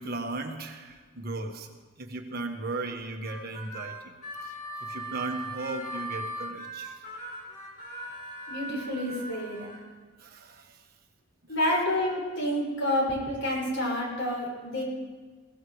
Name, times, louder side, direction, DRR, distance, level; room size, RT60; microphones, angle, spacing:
voice 1, 0.0-4.1 4.4-4.6 4.9-7.0 8.1-8.2 10.2-10.9, right 2 dB, 50° right, 3 dB, 1.5 m, -36 dB
Harmonica, 3.2-9.8, right 1 dB, 45° left, 5.0 m, -39 dB
voice 2, 8.5-9.7 11.5-14.8, left 1 dB, 80° left, -3 dB, 5.9 m, -29 dB
20.5 x 16.5 x 3.2 m, 1.4 s
head